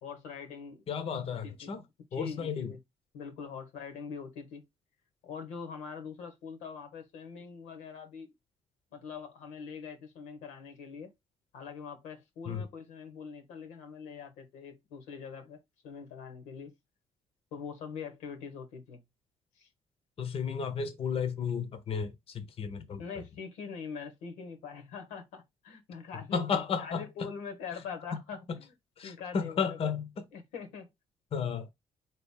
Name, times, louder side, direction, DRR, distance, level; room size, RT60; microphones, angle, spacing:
voice 1, 0.0-0.8 1.4-1.7 2.1-2.8 3.1-4.6 5.2-8.3 8.9-11.1 11.5-16.7 17.5-19.0 19.6-19.7 23.0-26.4 26.8-28.6 29.0-29.9 30.3-30.9, left 6 dB, 80° left, 1.0 m, -43 dB
voice 2, 0.9-1.8 2.1-2.7 12.5-12.7 20.2-23.2 26.3-27.3 28.5-28.6 29.0-30.2 31.3-31.7, left 6 dB, 50° left, 0.7 m, -33 dB
3.9 x 2.9 x 3.5 m
hypercardioid pair, 55°, 13 cm